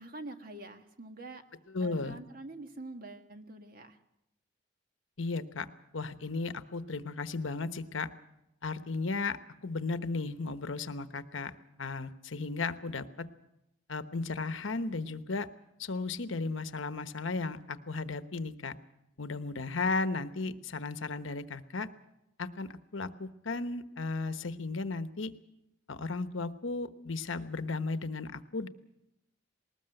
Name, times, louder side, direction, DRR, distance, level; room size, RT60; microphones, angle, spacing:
voice 1, 0.0-1.4 1.8-4.0, right 2 dB, 45° right, 6 dB, 1.6 m, -45 dB
voice 2, 1.7-2.2 5.2-5.7 5.9-8.1 8.6-11.5 11.8-13.3 13.9-15.5 15.8-18.7 19.2-21.9 22.4-25.3 25.9-28.7, left 3 dB, 75° left, 11 dB, 1.1 m, -35 dB
20.0 x 19.0 x 7.9 m, 0.86 s
head